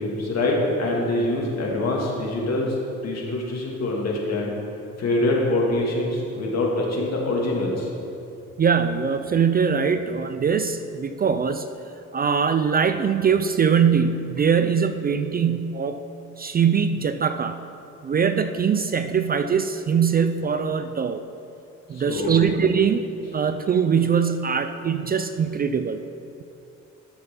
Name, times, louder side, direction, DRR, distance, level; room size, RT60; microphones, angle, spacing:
voice 1, 0.0-2.6 3.0-4.5 5.0-7.7 22.1-22.3, left 2 dB, 60° left, -2 dB, 2.1 m, -24 dB
voice 2, 8.6-11.7 12.1-16.0 16.4-17.6 18.0-21.2 21.9-23.1 23.3-26.0, right 6 dB, 30° right, 9 dB, 0.4 m, -22 dB
12.0 x 6.8 x 3.7 m, 2.8 s
cardioid pair, 90°, 30 cm